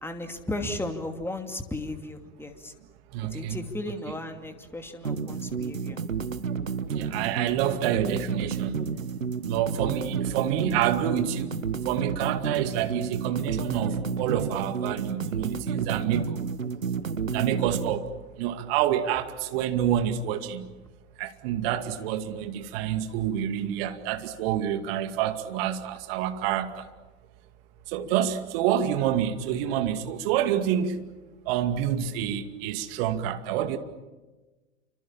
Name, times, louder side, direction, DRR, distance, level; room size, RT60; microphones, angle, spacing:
voice 1, 0.0-2.7 3.3-6.0, left 1 dB, 5° left, 6 dB, 2.6 m, -35 dB
voice 2, 3.1-3.7 4.1-4.2 7.0-8.8 9.4-11.5 11.9-16.4 17.3-18.1 18.4-20.7 21.2-26.8 27.9-31.0 31.5-33.8, right 10 dB, 45° right, 8 dB, 2.4 m, -28 dB
sound 1, 5.1-18.0, right 6 dB, 80° right, 1.3 m, -31 dB
29.0 x 25.5 x 7.3 m, 1.2 s
figure-of-eight pair, 95°, 39 cm